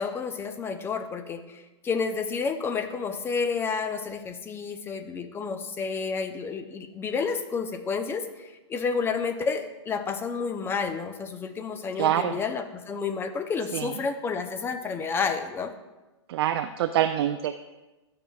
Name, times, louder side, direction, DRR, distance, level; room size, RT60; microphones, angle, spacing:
voice 1, 0.0-15.7, left 5 dB, 15° left, 8 dB, 0.6 m, -30 dB
voice 2, 12.0-12.3 13.7-13.9 16.3-17.6, right 11 dB, 55° right, 8 dB, 0.4 m, -25 dB
13.5 x 5.6 x 2.3 m, 1.1 s
hypercardioid pair, 120°, 15 cm